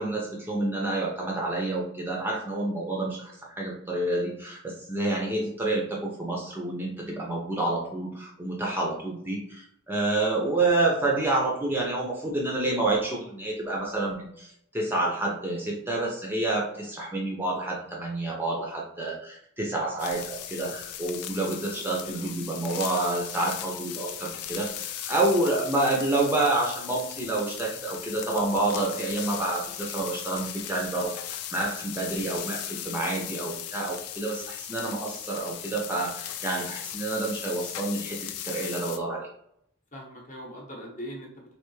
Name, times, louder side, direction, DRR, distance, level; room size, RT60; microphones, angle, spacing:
voice 1, 0.0-39.3, right 2 dB, 10° right, -2 dB, 0.5 m, -28 dB
voice 2, 8.6-8.9 21.7-22.4 39.9-41.6, equal, 35° left, -1 dB, 0.9 m, -42 dB
sound 1, 20.0-39.0, left 11 dB, 90° left, 0.4 m, -38 dB
3.3 x 3.0 x 3.1 m, 0.73 s
head